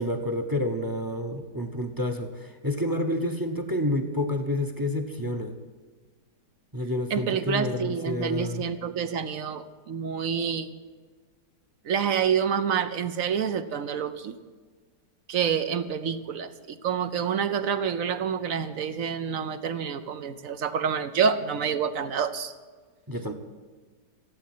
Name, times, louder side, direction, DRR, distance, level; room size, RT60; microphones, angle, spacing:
voice 1, 0.0-5.6 6.7-8.6 23.1-23.3, left 1 dB, 15° right, 7 dB, 0.8 m, -29 dB
voice 2, 7.1-10.7 11.8-14.3 15.3-22.5, right 7 dB, 60° right, 11 dB, 1.0 m, -28 dB
16.0 x 8.6 x 9.2 m, 1.5 s
omnidirectional pair, 1.8 m